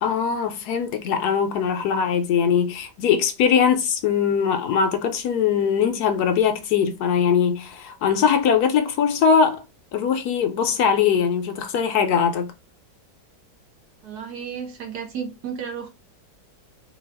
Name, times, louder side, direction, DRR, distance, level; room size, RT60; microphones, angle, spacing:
voice 1, 0.0-9.6 9.9-12.5, left 7 dB, 70° left, 1.0 m, -21 dB
voice 2, 14.0-15.9, right 7 dB, 70° right, 1.5 m, -33 dB
4.0 x 2.4 x 3.3 m
omnidirectional pair, 1.8 m